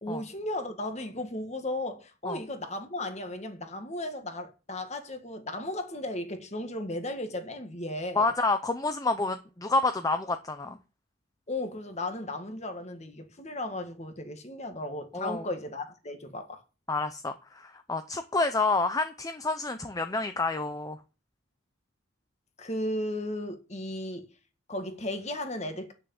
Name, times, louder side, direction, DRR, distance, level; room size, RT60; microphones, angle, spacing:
voice 1, 0.0-8.3 11.5-16.6 22.6-24.3 24.7-25.9, left 1 dB, 30° left, 1.7 m, -35 dB
voice 2, 8.2-10.8 15.1-15.4 16.9-21.0, left 3 dB, 15° left, 0.6 m, -28 dB
9.3 x 6.8 x 7.1 m
head